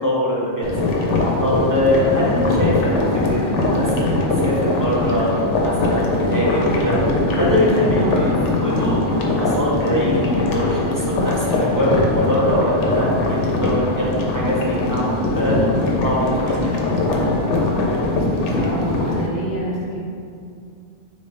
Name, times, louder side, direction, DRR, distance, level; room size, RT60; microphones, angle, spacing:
voice 1, 0.0-4.2 4.4-7.0 7.4-8.3 8.6-16.9, equal, 20° right, -7 dB, 0.7 m, -23 dB
sound 1, 0.6-19.3, left 2 dB, 85° left, 1.0 m, -21 dB
voice 2, 18.1-20.0, right 1 dB, 45° left, -5 dB, 0.8 m, -28 dB
4.1 x 3.5 x 3.3 m, 2.4 s
omnidirectional pair, 1.2 m